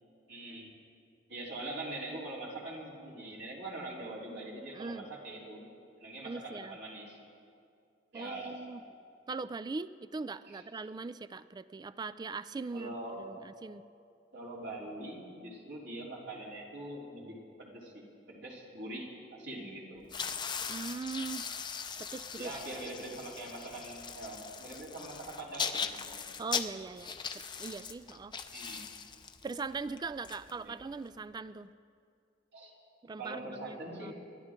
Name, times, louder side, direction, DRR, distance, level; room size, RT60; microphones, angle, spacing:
voice 1, 0.3-0.7 1.3-5.6 6.0-7.2 8.1-8.6 10.5-10.6 12.7-13.2 14.3-20.1 22.4-26.2 28.5-28.9 30.6-30.7 32.5-32.7 33.2-34.1, right 2 dB, 65° right, -4 dB, 3.6 m, -43 dB
voice 2, 4.7-5.1 6.2-6.8 8.1-8.8 9.3-13.8 20.7-21.5 22.0-22.6 26.4-28.3 29.4-31.7 33.0-34.1, right 4 dB, 20° right, 15 dB, 0.3 m, -41 dB
sound 1, 20.0-31.1, left 6 dB, 25° left, 0.6 m, -40 dB
28.0 x 11.5 x 3.7 m, 2.5 s
head